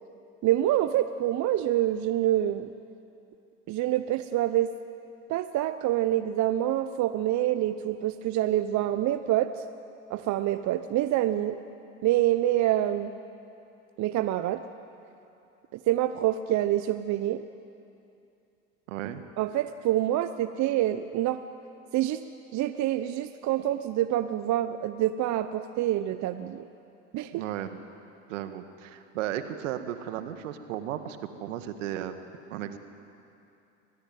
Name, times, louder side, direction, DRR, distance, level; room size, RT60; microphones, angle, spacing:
voice 1, 0.4-2.7 3.7-4.7 5.3-9.5 10.1-11.6 12.0-13.1 14.0-14.6 15.9-17.4 19.4-21.4 21.9-22.3 22.5-26.6 27.1-27.4, right 13 dB, 45° right, 11 dB, 1.0 m, -26 dB
voice 2, 18.9-19.2 27.3-27.8 28.3-32.1 32.5-32.8, right 11 dB, 75° right, 9 dB, 1.8 m, -35 dB
24.0 x 19.5 x 9.4 m, 2.7 s
hypercardioid pair, 85°, 38 cm